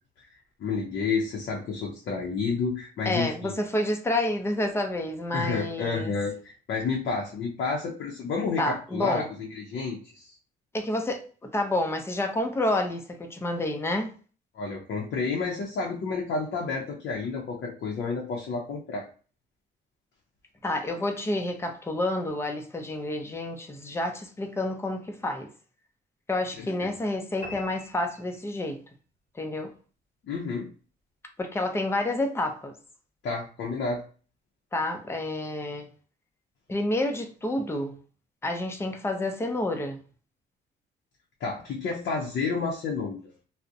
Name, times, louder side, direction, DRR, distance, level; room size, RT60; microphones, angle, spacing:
voice 1, 0.6-3.6 5.3-10.3 14.5-19.1 26.6-26.9 30.2-30.7 33.2-34.0 41.4-43.2, left 4 dB, 65° left, 0.6 m, -30 dB
voice 2, 3.1-6.1 8.6-9.3 10.7-11.2 11.5-14.1 20.6-25.5 26.3-28.8 29.3-29.7 31.4-32.7 34.7-35.9 36.7-38.0 38.4-40.0, left 1 dB, 10° left, 0.5 m, -29 dB
sound 1, 27.4-28.9, left 1 dB, 30° left, 1.1 m, -44 dB
2.4 x 2.0 x 2.6 m
cardioid pair, 90°, 20 cm